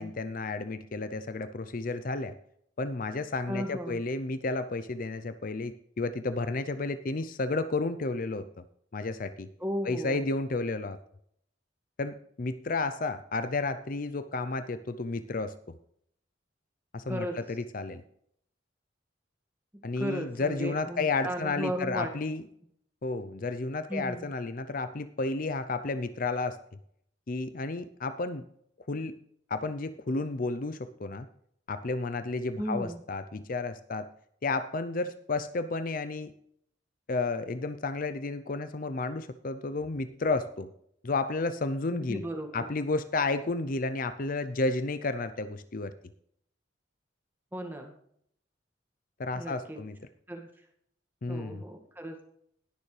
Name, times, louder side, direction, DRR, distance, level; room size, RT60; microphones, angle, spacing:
voice 1, 0.0-2.3 2.8-8.5 8.9-9.5 9.8-11.0 12.0-15.6 16.9-18.0 19.8-22.4 23.0-26.6 27.3-28.4 28.9-29.2 29.5-31.3 31.7-34.1 34.4-36.3 37.1-40.7 41.0-42.2 42.5-45.9 49.2-50.0 51.2-51.6, left 3 dB, 45° left, 11 dB, 0.6 m, -32 dB
voice 2, 3.5-4.0 9.6-10.2 17.1-17.4 19.7-22.1 23.9-24.3 32.6-33.0 41.9-42.7 47.5-47.9 49.4-49.8 50.3-50.5 51.3-52.2, equal, 10° right, 2 dB, 1.8 m, -35 dB
20.0 x 6.9 x 3.3 m, 0.68 s
head